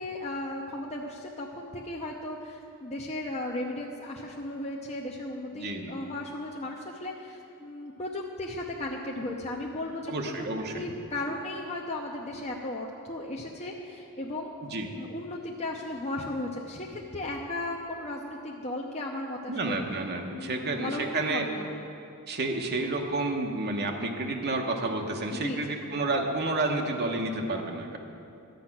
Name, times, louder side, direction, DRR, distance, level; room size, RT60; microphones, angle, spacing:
voice 1, 0.0-10.5 10.7-14.5 15.0-19.8 20.3-21.1 21.3-21.7 25.3-25.8, left 1 dB, 30° left, -1 dB, 0.7 m, -36 dB
voice 2, 5.5-5.9 10.1-10.9 14.6-14.9 19.5-21.5 22.3-28.0, right 2 dB, 50° right, 2 dB, 1.0 m, -30 dB
12.0 x 8.8 x 5.9 m, 2.7 s
head